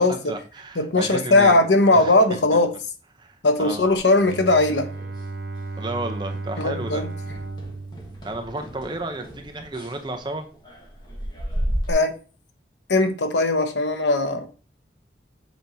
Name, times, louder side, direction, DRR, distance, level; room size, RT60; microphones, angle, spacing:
voice 1, 0.0-1.6 1.9-2.1 3.2-3.9 5.8-7.0 8.2-10.5, right 2 dB, 25° right, 0.8 m, -32 dB
voice 2, 0.8-2.7 3.4-4.9 6.6-7.1 11.9-12.1 12.9-14.5, left 2 dB, 90° left, 1.0 m, -19 dB
sound 1, 4.0-5.3 5.6-5.9 6.2-6.4 6.8-11.9, equal, 25° left, 1.5 m, -34 dB
Bowed string instrument, 4.2-9.1, right 3 dB, 85° right, 0.9 m, -35 dB
7.4 x 4.5 x 2.8 m
head